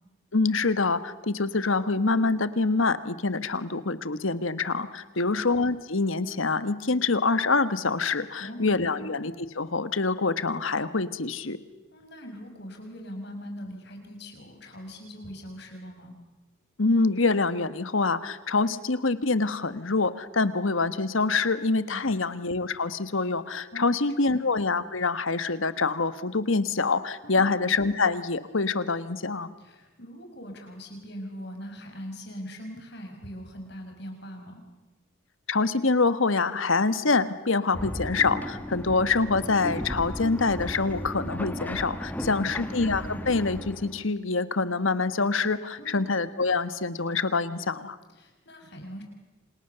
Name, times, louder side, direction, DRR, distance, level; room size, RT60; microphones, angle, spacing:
voice 1, 0.3-11.6 16.8-29.5 35.5-48.0, left 3 dB, 75° left, 13 dB, 1.4 m, -25 dB
voice 2, 8.4-9.1 11.9-16.1 21.9-22.2 23.7-23.9 24.2-24.4 27.2-27.5 29.6-34.6 42.2-42.7 45.8-46.1 48.1-49.0, equal, 55° left, 4 dB, 5.6 m, -41 dB
sound 1, 37.7-44.1, equal, 10° left, 1.5 m, -35 dB
28.5 x 27.5 x 6.9 m, 1.1 s
head